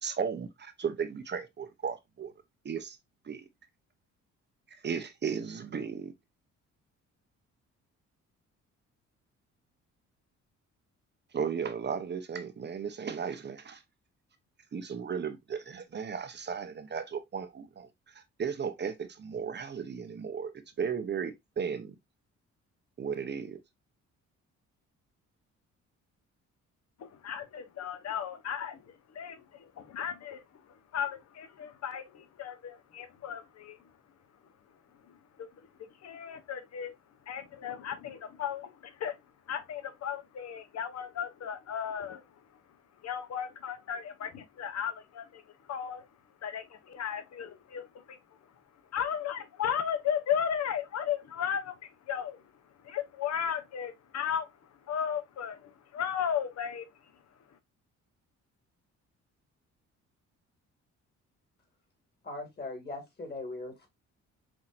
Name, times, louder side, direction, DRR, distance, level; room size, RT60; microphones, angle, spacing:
voice 1, 0.0-2.3 2.6-3.0 3.3-3.4 4.8-6.1 11.3-13.8 14.7-17.9 18.4-20.5 20.8-21.9 23.0-23.6, right 6 dB, 35° right, 0.7 m, -35 dB
voice 2, 27.0-33.8 35.0-35.7 36.0-37.0 37.3-39.2 39.5-42.6 43.0-46.1 46.4-48.2 48.9-52.4 52.8-56.9 57.5-57.6, left 8 dB, 60° left, 0.9 m, -35 dB
voice 3, 62.2-63.9, left 2 dB, 35° left, 2.1 m, -40 dB
6.0 x 2.7 x 2.4 m
cardioid pair, 90°, 30 cm